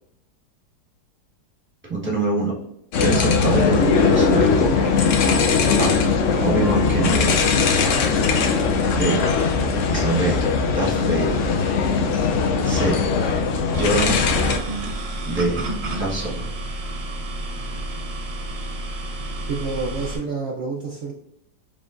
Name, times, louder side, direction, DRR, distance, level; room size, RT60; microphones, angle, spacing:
voice 1, 1.9-2.5 3.0-4.9 5.8-6.0 6.4-7.4 8.9-9.2 9.9-10.4 10.7-11.5 12.6-13.0 13.7-14.2 15.2-15.6 15.9-16.4, right 2 dB, 10° right, -4 dB, 1.1 m, -24 dB
sound 1, 2.9-14.6, left 5 dB, 75° left, 0.7 m, -20 dB
sound 2, 13.7-20.2, right 1 dB, 55° right, 1.1 m, -30 dB
voice 2, 19.5-21.1, right 4 dB, 80° right, 0 dB, 0.6 m, -28 dB
5.1 x 3.5 x 2.5 m, 0.76 s
omnidirectional pair, 1.9 m